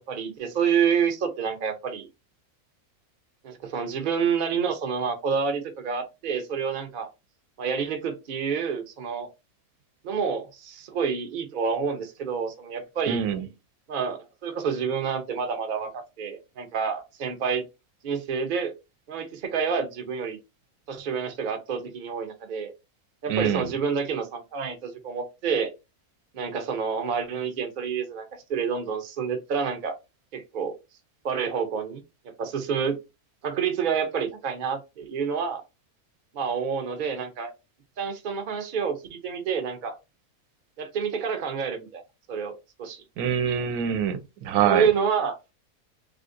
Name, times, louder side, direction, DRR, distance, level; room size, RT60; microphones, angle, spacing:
voice 1, 0.1-2.1 3.4-7.1 7.6-9.3 10.0-13.2 13.9-17.6 18.0-18.7 19.1-20.4 20.9-22.7 23.2-25.7 26.3-30.0 30.3-30.7 31.2-32.0 32.4-33.0 33.4-35.6 36.3-37.5 38.0-40.0 40.8-42.0 42.3-42.5 42.8-43.0 44.7-45.4, right 6 dB, 50° right, 0.6 m, -28 dB
voice 2, 13.1-13.5 23.3-23.8 43.2-44.9, right 8 dB, 90° right, 1.1 m, -25 dB
3.4 x 2.4 x 2.5 m
omnidirectional pair, 1.5 m